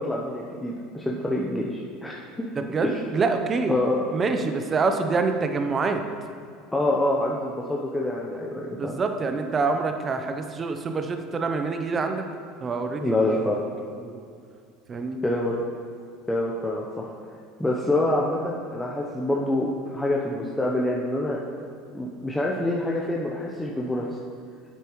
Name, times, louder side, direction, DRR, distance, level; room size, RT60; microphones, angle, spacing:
voice 1, 0.1-2.2 2.8-2.9 3.7-4.0 6.7-8.9 13.0-13.6 15.2-15.6 16.3-17.1 17.6-21.4 21.9-24.0, left 1 dB, 10° left, -3 dB, 0.8 m, -26 dB
voice 2, 2.6-3.7 4.1-6.0 8.5-12.3 12.6-13.4 14.0-14.2 14.9-15.2, right 4 dB, 30° right, 6 dB, 0.7 m, -26 dB
8.2 x 7.8 x 3.1 m, 2.3 s
hypercardioid pair, 80°, 0 cm